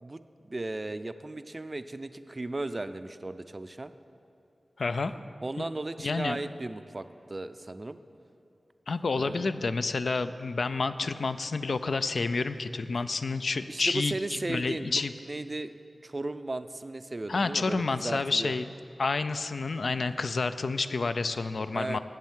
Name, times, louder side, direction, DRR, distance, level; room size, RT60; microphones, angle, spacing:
voice 1, 0.0-3.9 5.4-8.0 9.1-9.5 13.7-15.0 15.3-15.7 16.0-18.5 21.7-22.0, right 2 dB, 35° right, 11 dB, 0.4 m, -36 dB
voice 2, 4.8-5.1 5.6-5.7 6.0-6.4 8.9-15.1 17.3-18.6 19.0-22.0, left 3 dB, 75° left, 12 dB, 0.3 m, -29 dB
8.2 x 7.5 x 7.2 m, 2.7 s
wide cardioid pair, 85°, 0 cm